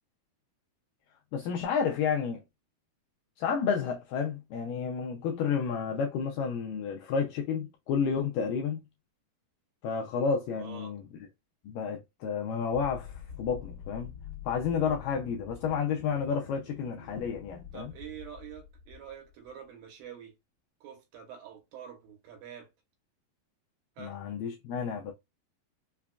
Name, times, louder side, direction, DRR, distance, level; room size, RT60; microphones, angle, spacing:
voice 1, 1.3-2.4 3.4-8.8 9.8-11.0 11.7-14.1 14.5-17.9 24.0-25.1, left 6 dB, 85° left, 1.9 m, -31 dB
voice 2, 10.6-11.0 17.7-20.3 20.8-22.7 24.0-24.2, right 9 dB, 75° right, 2.5 m, -46 dB
sound 1, 12.7-19.5, left 7 dB, 50° left, 1.3 m, -46 dB
5.8 x 2.3 x 2.2 m
omnidirectional pair, 4.4 m